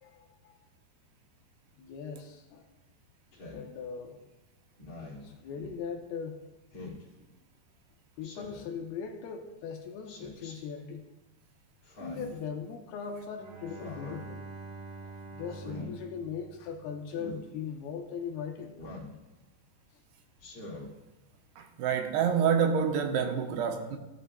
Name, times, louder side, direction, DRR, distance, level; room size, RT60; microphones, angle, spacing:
voice 1, 0.0-0.5 1.8-2.7 3.5-4.2 4.9-6.4 7.2-7.3 8.2-11.0 12.0-14.5 15.0-18.8, left 6 dB, 80° left, 2.5 m, -39 dB
Speech synthesizer, 3.3-3.7 4.8-5.3 6.7-7.0 8.2-8.7 10.1-10.6 11.8-12.4 13.7-14.2 15.5-15.9 17.1-17.4 18.8-19.2 20.4-20.9, left 2 dB, 40° left, 2.8 m, -44 dB
Bowed string instrument, 13.3-17.1, right 3 dB, 60° right, 5.0 m, -46 dB
voice 2, 21.6-24.0, right 7 dB, 80° right, 2.7 m, -27 dB
17.0 x 11.5 x 2.2 m
omnidirectional pair, 4.9 m